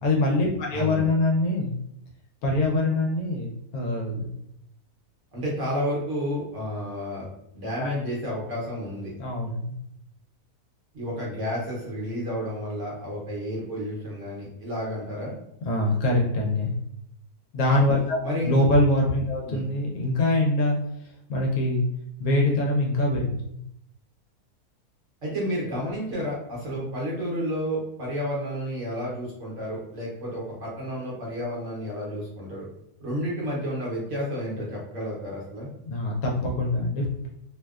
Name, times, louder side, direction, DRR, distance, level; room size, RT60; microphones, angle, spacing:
voice 1, 0.0-1.8 2.4-4.3 7.8-7.9 9.2-9.7 15.6-16.7 17.5-20.7 21.3-21.8 22.2-23.6 35.8-37.3, left 2 dB, 70° left, -1 dB, 1.0 m, -24 dB
voice 2, 0.7-1.0 5.3-7.3 7.5-9.1 10.9-15.3 18.2-18.5 19.4-19.6 25.2-32.6 33.0-35.7, equal, 60° right, -4 dB, 0.9 m, -31 dB
2.7 x 2.1 x 2.3 m, 0.77 s
omnidirectional pair, 1.7 m